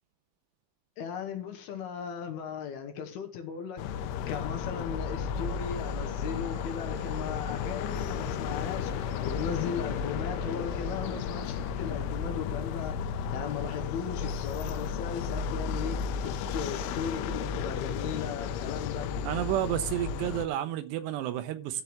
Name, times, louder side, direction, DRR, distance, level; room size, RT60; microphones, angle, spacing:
voice 1, 1.0-3.8 4.3-19.1, left 7 dB, 70° left, 2.7 m, -37 dB
Train, 3.2-20.4, right 3 dB, 45° right, 5.4 m, -52 dB
sound 1, 3.8-20.5, left 6 dB, 85° left, 3.2 m, -33 dB
voice 2, 19.2-21.8, right 12 dB, 80° right, 2.7 m, -31 dB
13.5 x 4.5 x 7.0 m
omnidirectional pair, 5.3 m